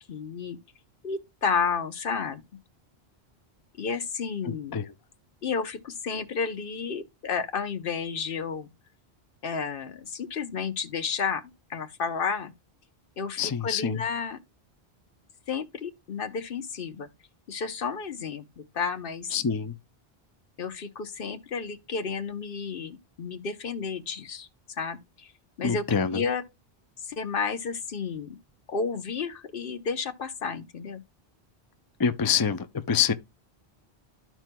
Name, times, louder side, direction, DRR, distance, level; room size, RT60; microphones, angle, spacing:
voice 1, 0.1-0.6 1.0-2.4 3.8-4.8 5.4-8.7 9.4-11.4 11.7-12.5 13.2-14.4 15.5-17.1 17.5-19.4 20.6-24.5 24.8-25.3 25.6-25.8 26.1-26.4 27.0-28.4 28.7-31.0, left 5 dB, 60° left, 1.0 m, -31 dB
voice 2, 4.5-4.9 13.4-14.0 19.3-19.7 25.6-26.2 32.0-33.1, left 7 dB, 35° left, 0.4 m, -26 dB
13.5 x 4.5 x 2.2 m
omnidirectional pair, 1.1 m